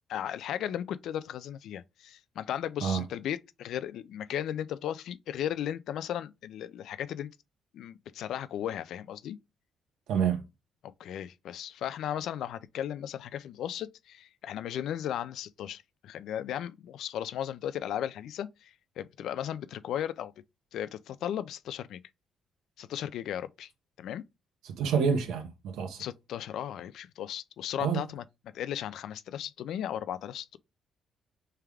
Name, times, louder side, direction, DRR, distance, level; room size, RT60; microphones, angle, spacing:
voice 1, 0.1-7.3 7.7-9.4 11.0-20.3 20.7-22.0 22.8-23.7 24.0-24.2 26.0-28.2 28.5-30.6, left 10 dB, 65° left, 0.3 m, -36 dB
voice 2, 10.1-10.4 24.6-26.0 27.8-28.0, right 6 dB, 90° right, 0.8 m, -28 dB
3.4 x 3.3 x 3.4 m
cardioid pair, 165°, 0 cm